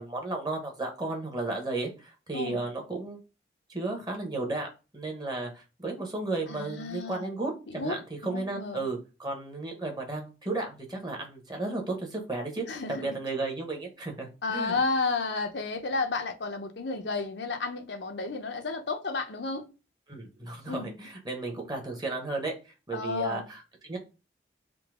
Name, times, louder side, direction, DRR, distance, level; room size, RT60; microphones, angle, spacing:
voice 1, 0.0-3.2 3.7-14.8 20.1-22.5 22.9-24.0, right 2 dB, 20° right, 1.1 m, -34 dB
voice 2, 6.5-7.3 7.7-8.0 8.2-8.9 12.7-13.1 14.4-19.7 20.7-20.9 22.9-23.4, left 3 dB, 70° left, 0.7 m, -32 dB
3.8 x 2.7 x 4.8 m
head